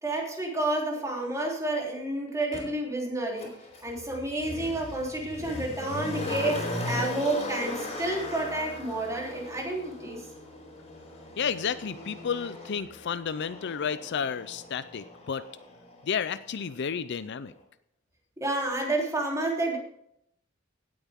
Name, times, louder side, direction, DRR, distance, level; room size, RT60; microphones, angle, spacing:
voice 1, 0.0-3.5 3.8-10.2 18.4-19.8, right 2 dB, 15° right, -2 dB, 3.4 m, -30 dB
Motor vehicle (road), 2.5-2.6 3.4-16.3 16.6-16.7, left 1 dB, 30° left, 4.1 m, -38 dB
voice 2, 11.4-15.5 16.0-17.5, left 7 dB, 55° left, 14 dB, 0.5 m, -31 dB
17.0 x 8.6 x 3.6 m, 0.72 s
head